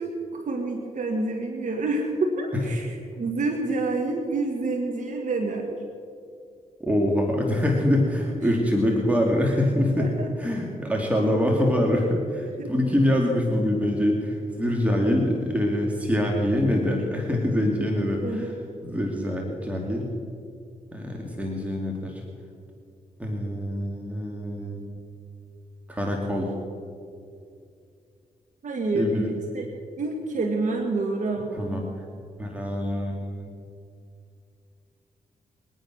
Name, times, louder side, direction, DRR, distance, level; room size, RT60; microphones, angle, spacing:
voice 1, 0.0-5.8 8.4-8.5 8.9-9.0 10.0-10.3 12.6-12.7 18.2-18.6 28.6-29.7 30.0-31.8, right 2 dB, 55° right, 1 dB, 1.8 m, -28 dB
voice 2, 6.8-10.1 10.4-18.5 18.8-20.1 20.9-22.2 23.2-25.0 25.9-26.5 28.9-29.3 31.5-31.8 32.4-33.5, left 1 dB, 10° right, 0 dB, 2.8 m, -25 dB
22.5 x 9.3 x 6.3 m, 2.4 s
cardioid pair, 60°, 15 cm